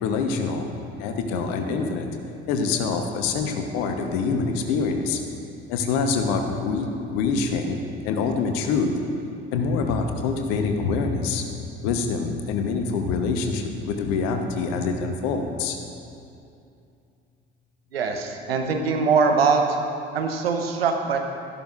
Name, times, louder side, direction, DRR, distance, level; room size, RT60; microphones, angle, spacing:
voice 1, 0.0-0.7 1.0-2.1 2.5-5.2 5.7-7.8 8.0-8.9 9.5-15.8, left 4 dB, 60° left, 5 dB, 1.1 m, -25 dB
voice 2, 17.9-19.8 20.1-21.2, right 5 dB, 75° right, 4 dB, 0.9 m, -22 dB
13.5 x 11.5 x 2.6 m, 2.6 s
figure-of-eight pair, 55°, 30 cm